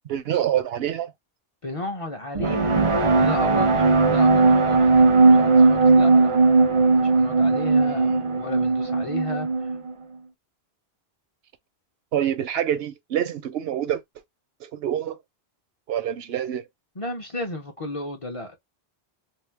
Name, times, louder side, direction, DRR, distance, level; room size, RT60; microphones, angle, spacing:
voice 1, 0.0-1.1 7.8-8.2 12.1-14.0 14.6-15.2 15.9-16.7, right 10 dB, 75° right, 0.8 m, -26 dB
voice 2, 1.6-4.8 5.3-6.3 6.9-9.5 17.0-18.6, left 2 dB, 35° left, 0.7 m, -33 dB
sound 1, 2.3-9.9, right 3 dB, 40° right, 0.5 m, -18 dB
2.8 x 2.1 x 3.2 m
omnidirectional pair, 1.1 m